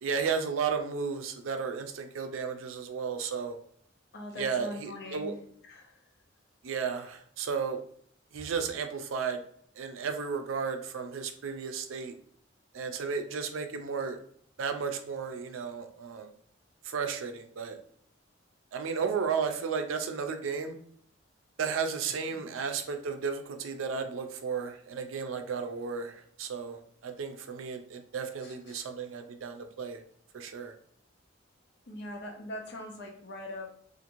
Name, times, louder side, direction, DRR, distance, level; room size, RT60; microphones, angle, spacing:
voice 1, 0.0-3.5 4.4-5.3 6.6-7.8 8.3-9.4 9.8-12.1 12.7-14.2 14.6-16.3 16.8-17.8 18.7-20.8 21.6-30.0 30.3-30.7, right 6 dB, 90° right, 6 dB, 0.4 m, -33 dB
voice 2, 4.1-6.1 22.4-22.5 28.4-28.9 31.9-33.7, left 1 dB, 60° left, 2 dB, 0.7 m, -42 dB
2.9 x 2.5 x 2.5 m, 0.63 s
head